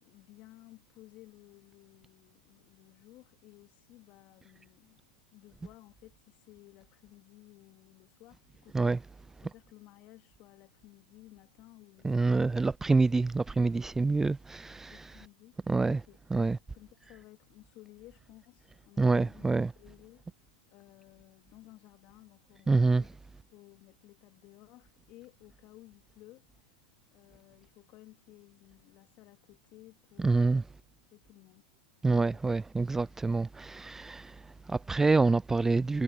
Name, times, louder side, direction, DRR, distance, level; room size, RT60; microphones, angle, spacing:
voice 1, 0.0-5.0 5.3-8.9 9.5-12.4 14.9-15.6 15.9-16.2 16.7-20.3 20.7-23.2 23.5-26.5 27.1-30.6 31.1-31.6 32.1-32.4, left 18 dB, 45° left, 2.6 m, -56 dB
voice 2, 12.0-15.3 15.7-16.0 16.3-16.6 19.0-19.7 22.7-23.0 30.2-30.6 32.0-36.0, right 3 dB, 10° right, 0.4 m, -27 dB
hypercardioid pair, 105°, 4 cm